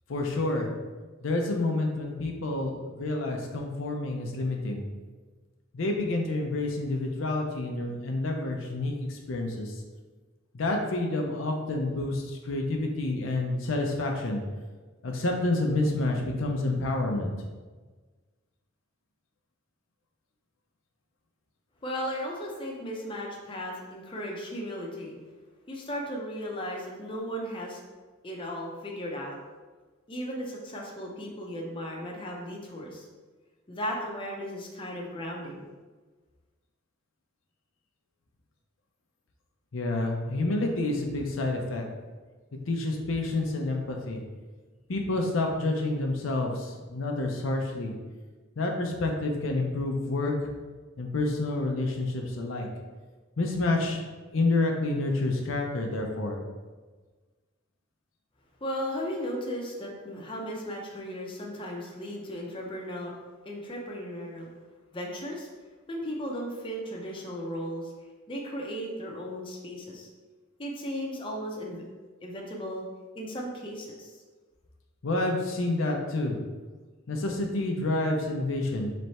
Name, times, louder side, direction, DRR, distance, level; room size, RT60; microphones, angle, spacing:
voice 1, 0.1-0.7 1.2-4.8 5.7-9.7 10.5-14.4 15.0-17.3 39.7-41.8 42.7-44.2 44.9-47.9 48.6-50.5 51.0-52.7 53.4-54.0 54.3-56.4 75.0-76.4 77.1-78.9, left 2 dB, 80° left, 1 dB, 0.6 m, -28 dB
voice 2, 21.8-25.2 25.7-27.8 28.2-29.4 30.1-33.1 33.7-35.6 58.6-63.1 63.5-64.5 64.9-65.5 65.9-67.9 68.3-70.1 70.6-71.8 72.2-72.8 73.1-74.1, equal, 25° left, -2 dB, 0.7 m, -36 dB
3.3 x 3.2 x 4.2 m, 1.3 s
head